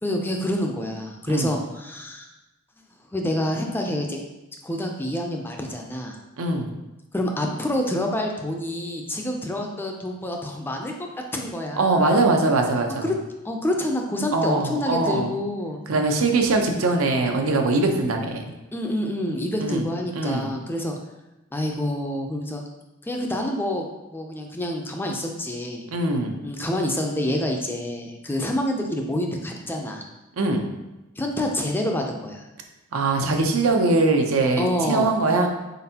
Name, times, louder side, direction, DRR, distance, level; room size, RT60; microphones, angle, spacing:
voice 1, 0.0-2.3 3.1-4.2 4.6-6.2 7.1-10.9 11.3-12.1 13.0-13.1 13.4-15.8 18.7-20.9 21.5-22.6 23.0-25.8 26.4-30.0 31.2-32.4 34.6-35.5, left 1 dB, 10° left, 2 dB, 0.4 m, -27 dB
voice 2, 6.4-6.7 11.8-13.1 14.3-15.3 15.9-18.4 19.6-19.8 20.1-20.5 25.9-26.4 30.3-30.6 32.9-35.5, right 2 dB, 85° right, 3 dB, 0.6 m, -22 dB
4.2 x 3.9 x 2.8 m, 1.0 s
head